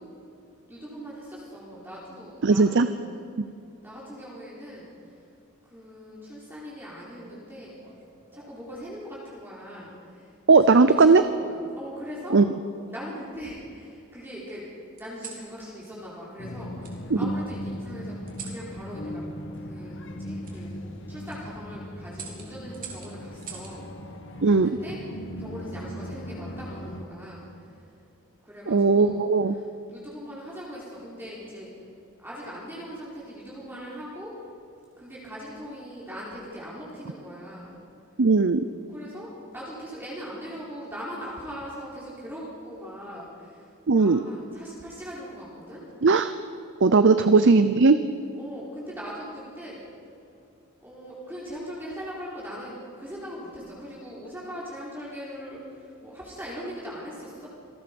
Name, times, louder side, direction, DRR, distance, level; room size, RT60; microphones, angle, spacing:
voice 1, 0.7-3.2 3.8-5.3 5.7-7.7 8.3-12.4 12.9-14.6 15.0-18.2 18.4-19.2 19.6-20.8 21.1-23.9 24.4-27.8 28.4-31.7 32.2-34.3 35.0-37.8 38.9-45.8 47.0-47.4 48.3-49.8 50.8-57.5, equal, 10° right, -7 dB, 4.3 m, -40 dB
voice 2, 2.4-2.9 10.5-11.2 12.3-12.4 24.4-24.8 28.7-29.5 38.2-38.6 43.9-44.2 46.0-46.3 46.8-48.0, right 4 dB, 60° right, 11 dB, 0.7 m, -18 dB
sound 1, 7.6-8.7 9.8-10.2 11.4-12.2 12.8-13.7 15.0-15.5 16.8-17.0 18.3-18.6 20.4-20.6 21.1-21.4 22.1-23.8 25.3-25.7, right 6 dB, 40° right, 4.1 m, -45 dB
sound 2, 16.4-27.0, equal, 60° left, 2.0 m, -38 dB
27.5 x 19.0 x 5.3 m, 2.7 s
head